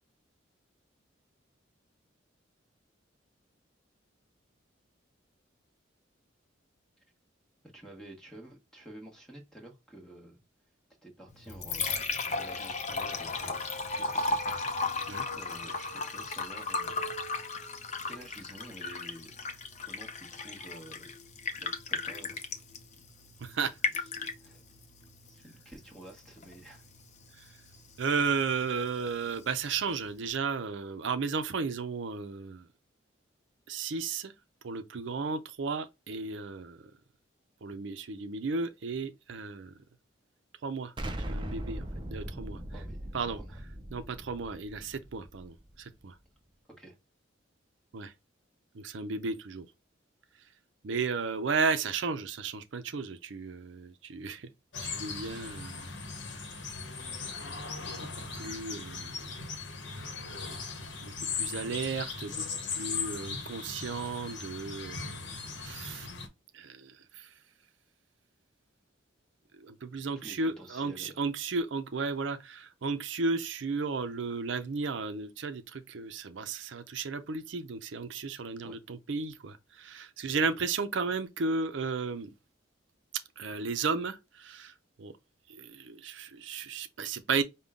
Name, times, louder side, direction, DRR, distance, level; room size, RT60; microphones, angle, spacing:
voice 1, 7.7-10.4 11.0-13.7 14.1-15.0 15.3-17.1 18.0-19.3 19.8-21.1 21.6-22.5 24.0-24.1 24.4-24.7 25.2-26.8 42.7-43.1 43.3-43.6 46.8-46.9 70.2-71.2 78.6-78.8, right 1 dB, 5° left, 1.1 m, -50 dB
Liquid, 11.3-30.3, left 3 dB, 35° left, 0.6 m, -37 dB
voice 2, 23.4-23.8 28.0-32.7 33.7-34.3 34.6-36.8 37.6-39.7 40.6-40.9 41.3-41.8 42.1-42.8 43.1-43.4 43.9-46.1 47.9-48.1 48.7-49.7 50.8-54.5 54.8-55.9 58.4-59.3 61.0-62.4 62.7-65.2 65.6-66.1 66.5-67.3 69.6-82.3 83.4-84.7 85.0-85.1 85.5-87.4, right 4 dB, 70° right, 0.5 m, -34 dB
Explosion, 41.0-45.8, right 1 dB, 25° right, 0.5 m, -39 dB
sound 1, 54.7-66.3, left 5 dB, 65° left, 0.9 m, -38 dB
5.3 x 2.2 x 3.6 m
head